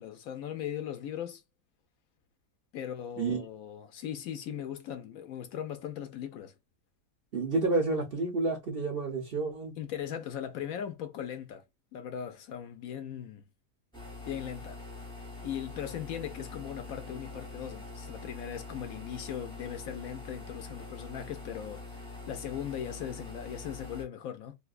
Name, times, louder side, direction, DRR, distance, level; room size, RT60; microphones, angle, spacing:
voice 1, 0.0-1.4 2.7-6.5 9.8-11.6 11.9-13.4 14.3-14.8 15.4-24.6, left 9 dB, 70° left, 0.9 m, -39 dB
voice 2, 7.3-9.8, right 3 dB, 50° right, 0.7 m, -30 dB
sound 1, 13.9-24.0, left 3 dB, 5° left, 0.6 m, -44 dB
3.3 x 2.6 x 2.4 m
omnidirectional pair, 1.7 m